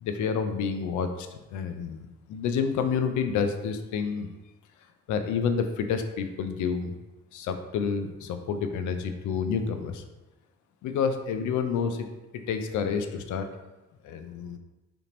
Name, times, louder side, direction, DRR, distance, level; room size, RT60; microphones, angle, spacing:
voice 1, 0.0-4.3 5.1-6.9 7.3-10.0 10.8-12.1 12.3-13.5 14.0-14.6, left 6 dB, 80° left, 7 dB, 0.5 m, -29 dB
3.5 x 2.9 x 3.7 m, 1.1 s
cardioid pair, 175°, 30 cm